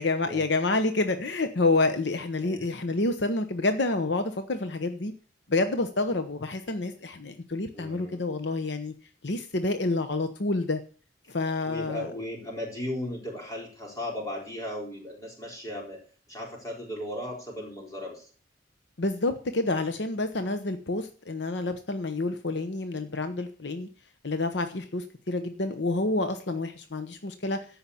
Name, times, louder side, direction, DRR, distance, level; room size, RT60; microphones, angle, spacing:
voice 1, 0.0-5.1 5.5-8.9 9.2-10.8 11.3-12.1 19.0-23.9 24.2-27.6, left 2 dB, 65° left, 8 dB, 0.9 m, -28 dB
voice 2, 2.4-2.7 7.7-8.2 11.6-16.0 16.3-18.3, left 1 dB, 15° left, -1 dB, 4.1 m, -36 dB
14.0 x 5.7 x 8.4 m, 0.42 s
head